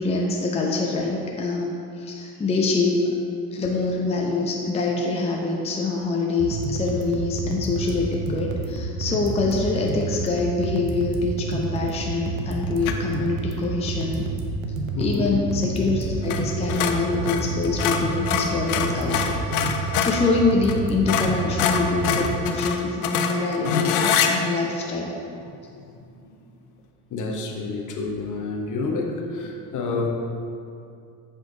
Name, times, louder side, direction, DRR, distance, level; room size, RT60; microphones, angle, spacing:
voice 1, 0.0-3.1 3.5-14.3 15.0-25.1, left 3 dB, 15° left, -1 dB, 0.6 m, -25 dB
sound 1, 6.4-22.4, right 3 dB, 65° right, 0.8 m, -30 dB
sound 2, 12.8-13.1 16.2-16.4 16.7-20.2 20.7-20.8 21.1-24.3, left 8 dB, 70° left, 0.6 m, -24 dB
voice 2, 14.9-15.4 21.4-21.5 26.1-26.2 27.1-30.1, left 3 dB, 40° left, 1 dB, 1.0 m, -28 dB
7.7 x 3.7 x 3.8 m, 2.5 s
hypercardioid pair, 60°, 46 cm